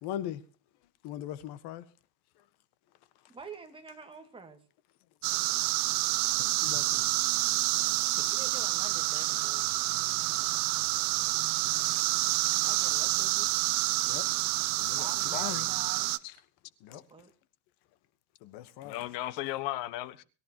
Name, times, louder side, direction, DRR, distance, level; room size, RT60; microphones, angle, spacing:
voice 1, 0.0-0.4 1.0-1.9 2.4-2.5 6.6-7.1 9.4-9.5 10.1-11.3 11.5-12.7 14.1-14.3 14.7-15.1 16.8-17.0 18.4-19.1, left 11 dB, 70° left, 1.3 m, -42 dB
voice 2, 3.3-4.6 8.3-9.6 12.6-13.6 14.9-16.1 16.9-17.3, right 4 dB, 15° right, 2.0 m, -47 dB
sound 1, 5.2-16.2, right 20 dB, 70° right, 1.0 m, -28 dB
voice 3, 15.3-15.7 18.8-20.2, left 15 dB, 85° left, 1.4 m, -36 dB
23.0 x 14.0 x 2.9 m
cardioid pair, 160°, 41 cm